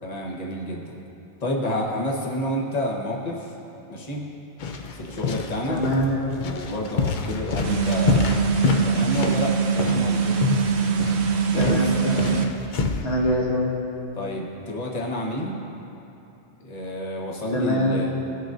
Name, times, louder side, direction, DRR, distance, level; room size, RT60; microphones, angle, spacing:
voice 1, 0.0-0.9 1.4-3.5 3.9-4.3 4.9-5.8 6.4-10.4 11.5-11.8 14.1-15.6 16.6-18.1, left 1 dB, 35° left, -2 dB, 1.2 m, -29 dB
sound 1, 4.6-13.0, left 5 dB, 55° left, 0.6 m, -27 dB
voice 2, 5.7-6.1 11.6-12.3 13.0-13.7 17.5-18.0, equal, 75° left, -4 dB, 1.9 m, -24 dB
sound 2, 7.6-12.4, right 6 dB, 70° right, 0.9 m, -23 dB
18.5 x 6.4 x 2.6 m, 2.9 s
omnidirectional pair, 1.2 m